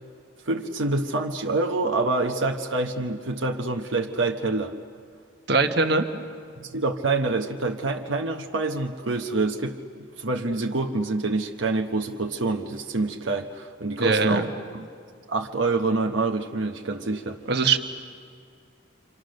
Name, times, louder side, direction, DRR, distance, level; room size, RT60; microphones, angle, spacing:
voice 1, 0.5-4.7 6.6-9.8 10.2-14.9 15.3-17.4, right 3 dB, 75° right, 2 dB, 1.1 m, -26 dB
voice 2, 5.5-6.1 14.0-14.5 17.5-17.8, right 4 dB, 55° right, 6 dB, 1.4 m, -21 dB
29.0 x 25.5 x 6.6 m, 2.2 s
head